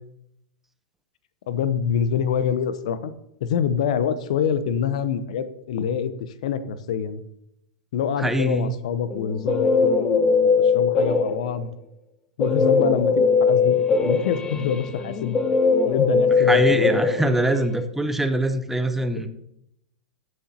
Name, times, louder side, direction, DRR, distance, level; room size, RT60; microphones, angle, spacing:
voice 1, 1.5-3.1 3.4-7.2 7.9-11.7 12.4-15.4 15.8-17.3, left 8 dB, 65° left, 13 dB, 0.8 m, -26 dB
voice 2, 8.2-8.8 16.4-19.3, right 1 dB, 5° right, 9 dB, 0.8 m, -23 dB
Guitar, 9.1-11.6 12.4-17.8, left 4 dB, 20° left, 1.0 m, -20 dB
13.5 x 7.6 x 2.8 m, 0.78 s
hypercardioid pair, 100°, 4 cm